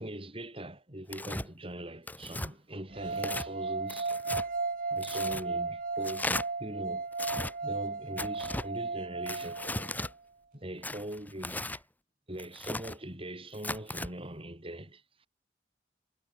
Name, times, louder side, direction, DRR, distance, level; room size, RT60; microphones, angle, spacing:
voice 1, 0.0-4.2 4.9-7.1 7.6-9.6 10.5-11.8 12.3-15.3, right 1 dB, 30° right, 6.9 m, -42 dB
Tearing, 1.1-1.5 2.1-2.5 3.2-3.5 3.9-4.5 5.0-5.4 6.0-6.4 7.1-7.5 8.2-8.7 9.3-10.1 10.8-11.8 12.4-13.0 13.5-14.1, left 2 dB, 10° left, 2.4 m, -36 dB
sound 1, 2.9-10.0, right 4 dB, 50° right, 1.4 m, -35 dB
head